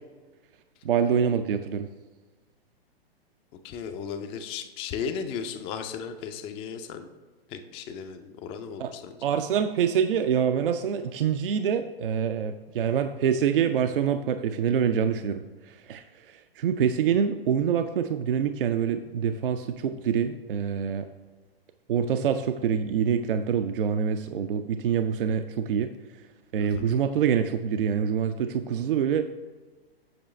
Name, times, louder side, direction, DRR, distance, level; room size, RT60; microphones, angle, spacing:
voice 1, 0.8-1.9 8.8-8.9 9.2-16.0 16.6-21.1 21.9-25.9 26.5-29.2, right 7 dB, 60° right, 8 dB, 0.5 m, -25 dB
voice 2, 3.6-7.1 7.5-9.2 26.6-26.9, left 6 dB, 20° left, 8 dB, 0.4 m, -35 dB
7.8 x 6.0 x 3.2 m, 1.3 s
figure-of-eight pair, 110°, 31 cm